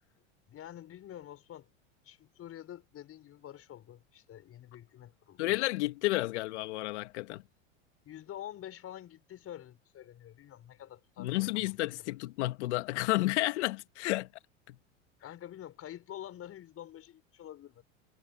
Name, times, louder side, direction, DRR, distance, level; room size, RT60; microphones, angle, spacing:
voice 1, 0.5-1.7 2.0-5.4 8.0-12.0 15.2-17.8, left 11 dB, 40° left, 6.4 m, -47 dB
voice 2, 5.4-7.4 11.2-14.3 14.7-14.8, left 19 dB, 70° left, 2.1 m, -31 dB
hypercardioid pair, 95°, 35 cm